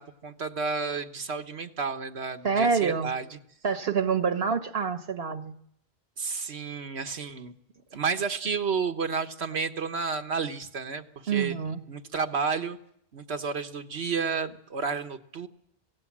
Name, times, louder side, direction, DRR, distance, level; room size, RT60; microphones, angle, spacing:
voice 1, 0.0-3.4 6.2-7.5 7.9-11.6 11.9-12.8 13.1-15.5, right 5 dB, 90° right, 7 dB, 1.5 m, -31 dB
voice 2, 2.4-3.1 3.6-5.5 11.3-11.8, right 5 dB, 70° right, 9 dB, 1.4 m, -26 dB
26.0 x 17.0 x 7.4 m, 0.73 s
omnidirectional pair, 1.1 m